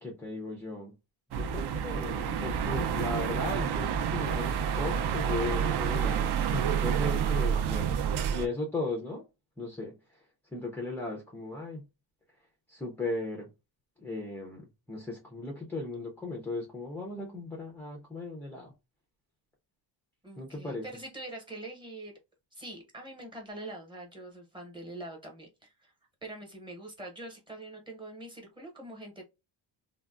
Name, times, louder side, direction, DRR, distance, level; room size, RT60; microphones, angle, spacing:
voice 1, 0.0-0.9 1.3-7.9 8.3-9.3 9.6-10.0 10.5-11.8 12.7-13.5 14.0-18.7 20.4-20.9, left 2 dB, 5° left, 0.3 m, -36 dB
sound 1, 1.3-8.5, right 8 dB, 55° right, 0.5 m, -29 dB
voice 2, 20.2-22.1 22.5-25.9 26.2-29.2, right 1 dB, 10° right, 0.9 m, -44 dB
3.5 x 2.2 x 2.3 m
cardioid pair, 165°, 48 cm